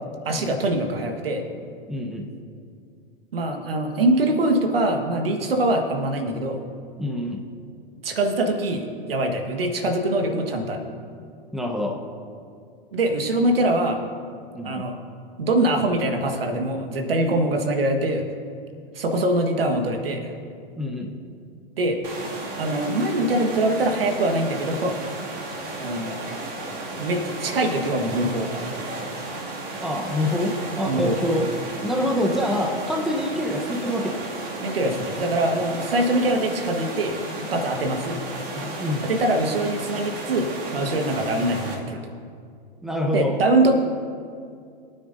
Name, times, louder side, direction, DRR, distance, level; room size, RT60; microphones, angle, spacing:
voice 1, 0.2-1.4 3.3-6.6 8.0-10.8 12.9-14.0 14.6-15.0 15.4-18.3 18.9-20.3 21.8-22.0 22.5-25.0 25.8-26.2 26.9-28.5 30.8-31.2 34.6-38.2 39.0-42.0 43.1-43.7, right 1 dB, 75° right, 5 dB, 1.5 m, -23 dB
voice 2, 1.9-2.3 7.0-7.4 11.5-12.0 14.5-14.8 20.8-21.1 29.8-31.5 31.8-34.2 38.5-39.1 42.8-43.4, left 1 dB, ahead, 2 dB, 1.0 m, -26 dB
sound 1, 22.0-41.7, right 2 dB, 45° right, 2.4 m, -34 dB
20.5 x 9.4 x 2.7 m, 2.3 s
hypercardioid pair, 105°, 29 cm